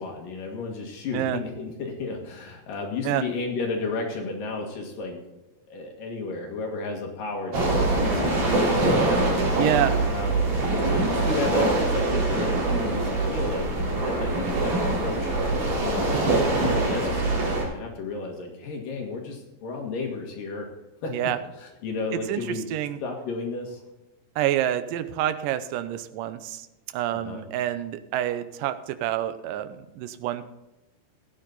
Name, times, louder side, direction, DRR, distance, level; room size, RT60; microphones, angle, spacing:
voice 1, 0.0-5.2 5.7-9.2 9.5-9.7 10.1-10.3 10.6-13.7 14.0-15.4 15.7-16.2 16.6-20.7 21.0-21.3 21.6-22.7 23.0-23.8 27.1-27.4, left 3 dB, 60° left, 1 dB, 3.2 m, -33 dB
sound 1, 7.5-17.6, right 2 dB, 55° right, 4.9 m, -24 dB
voice 2, 9.6-10.0 21.1-21.4 22.3-23.0 24.4-26.7 26.9-30.5, right 12 dB, 80° right, 11 dB, 2.0 m, -27 dB
15.0 x 9.8 x 4.0 m, 1.0 s
omnidirectional pair, 4.7 m